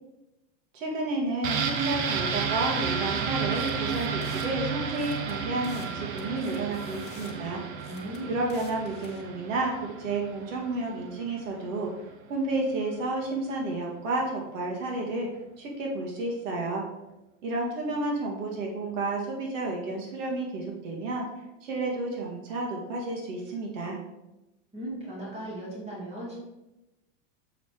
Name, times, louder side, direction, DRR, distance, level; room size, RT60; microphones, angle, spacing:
voice 1, 0.7-7.6 8.3-11.9 12.3-15.3 15.6-16.9 17.4-21.3 21.6-24.0, right 2 dB, 80° right, -1 dB, 1.8 m, -31 dB
sound 1, 1.4-11.1 11.4-11.5, right 6 dB, 35° right, 0.6 m, -32 dB
sound 2, 3.5-4.5 4.9-5.9 6.2-7.3 7.8-9.2, left 6 dB, 25° left, 1.0 m, -50 dB
voice 2, 7.8-8.4 24.7-26.4, right 1 dB, 15° right, -6 dB, 2.7 m, -37 dB
7.0 x 5.0 x 4.5 m, 0.97 s
supercardioid pair, 155°, 38 cm